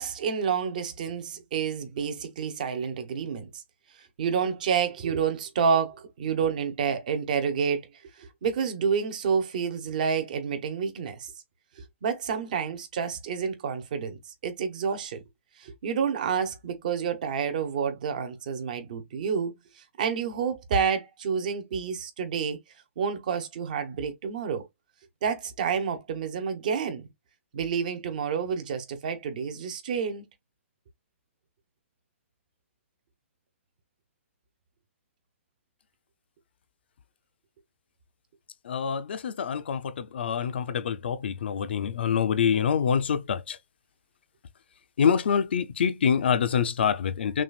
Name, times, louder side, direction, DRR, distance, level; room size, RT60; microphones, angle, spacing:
voice 1, 0.0-3.5 4.2-7.8 8.2-11.3 11.8-15.2 15.6-19.6 20.0-22.6 23.0-24.6 25.2-27.1 27.5-30.2, right 6 dB, 35° right, 1.0 m, -29 dB
voice 2, 38.7-43.6 45.0-47.4, left 7 dB, 50° left, 0.6 m, -26 dB
6.0 x 2.5 x 2.4 m
hypercardioid pair, 180°, 7 cm